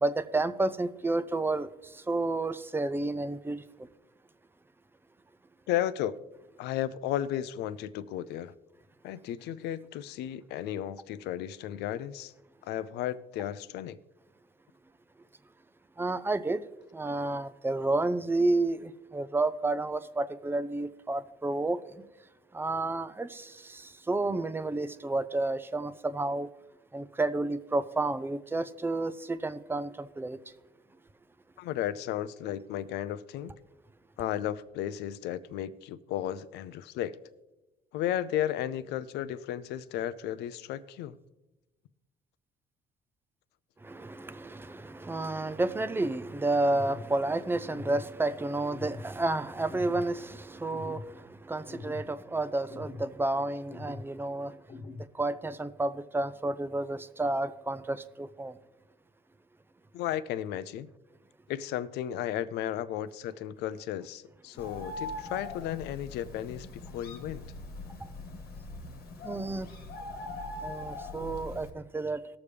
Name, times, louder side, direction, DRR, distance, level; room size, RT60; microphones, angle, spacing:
voice 1, 0.0-1.7 1.9-3.6 16.0-16.6 16.9-21.8 22.5-26.5 26.9-30.4 43.8-54.5 55.2-58.5 69.2-69.7 70.6-72.2, right 2 dB, 15° right, 0.5 m, -31 dB
voice 2, 5.7-6.2 6.6-8.5 9.0-12.3 12.6-14.0 31.6-33.5 34.2-37.2 37.9-41.2 59.9-60.9 61.5-66.7 66.9-67.4, left 11 dB, 85° left, 0.5 m, -34 dB
sound 1, 46.7-47.1 47.7-48.1 48.7-49.1 49.7-50.1 50.7-51.1 51.7-52.1 52.7-53.1 53.7-54.1 54.7-55.1, left 3 dB, 45° left, 1.2 m, -43 dB
Bird, 64.6-71.7, left 2 dB, 65° left, 1.3 m, -41 dB
19.0 x 7.0 x 3.3 m
cardioid pair, 110°, 17 cm